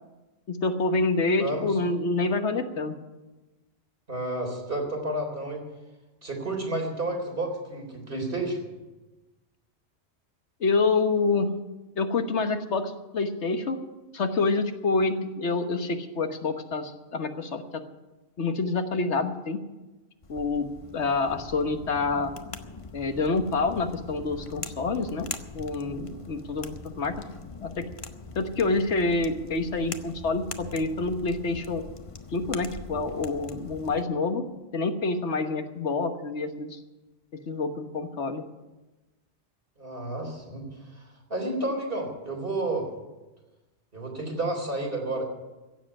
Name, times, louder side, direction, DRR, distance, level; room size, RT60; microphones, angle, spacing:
voice 1, 0.5-3.0 10.6-11.5 12.0-13.8 14.1-17.8 18.4-19.6 20.3-20.7 20.9-22.3 22.9-25.3 25.5-27.1 27.6-27.9 28.3-31.8 32.3-34.4 34.7-36.8 37.3-38.4, left 3 dB, 90° left, 7 dB, 1.5 m, -27 dB
voice 2, 1.4-1.8 4.1-5.6 6.2-8.6 39.8-40.7 40.9-41.0 41.3-42.9 43.9-45.2, right 2 dB, 55° right, 1 dB, 3.9 m, -31 dB
sound 1, 20.2-34.0, left 4 dB, 35° left, 0.8 m, -42 dB
16.0 x 7.5 x 9.9 m, 1.1 s
omnidirectional pair, 1.1 m